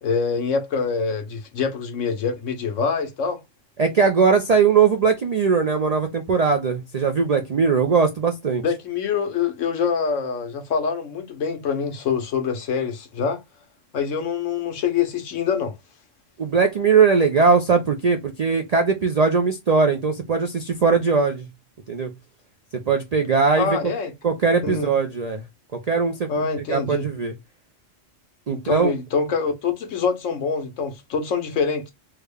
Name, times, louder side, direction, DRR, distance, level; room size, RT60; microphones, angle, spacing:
voice 1, 0.0-3.4 8.6-13.4 13.9-15.8 23.5-24.1 24.6-24.9 26.3-27.1 28.5-31.9, left 5 dB, 80° left, 1.2 m, -25 dB
voice 2, 3.8-8.6 16.4-21.5 21.9-22.1 22.7-23.8 24.2-25.4 25.7-26.3 26.7-27.3 28.5-28.9, right 5 dB, 65° right, 0.4 m, -20 dB
3.5 x 2.1 x 3.3 m
omnidirectional pair, 1.3 m